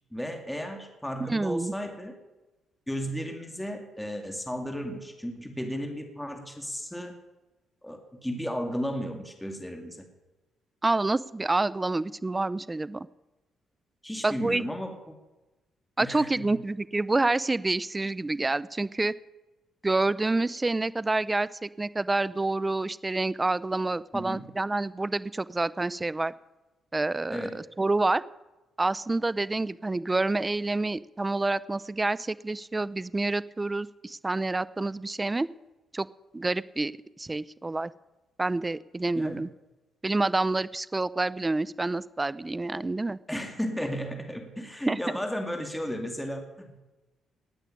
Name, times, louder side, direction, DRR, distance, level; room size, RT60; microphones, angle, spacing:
voice 1, 0.1-2.1 2.9-7.1 7.8-10.1 14.0-15.2 16.0-16.5 24.1-24.5 27.3-27.6 39.2-39.4 43.3-46.8, equal, 5° left, 4 dB, 2.3 m, -34 dB
voice 2, 1.2-1.7 10.8-13.1 14.2-14.6 16.0-19.1 19.8-26.3 26.9-28.2 28.8-35.5 35.9-36.1 36.3-36.9 37.2-37.9 38.4-39.5 40.0-43.2 44.9-45.0, right 2 dB, 20° right, 18 dB, 0.6 m, -28 dB
18.5 x 6.7 x 10.0 m, 1.1 s
cardioid pair, 90°, 0 cm